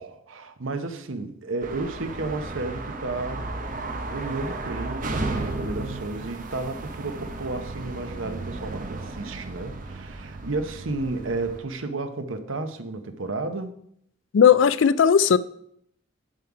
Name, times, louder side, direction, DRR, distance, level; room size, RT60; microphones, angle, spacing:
voice 1, 0.0-3.5 4.0-13.8, right 3 dB, 85° right, 0.9 m, -32 dB
sound 1, 1.6-11.6, right 2 dB, 40° right, 0.8 m, -34 dB
voice 2, 14.3-15.4, left 7 dB, 70° left, 0.4 m, -16 dB
7.5 x 7.2 x 4.9 m
head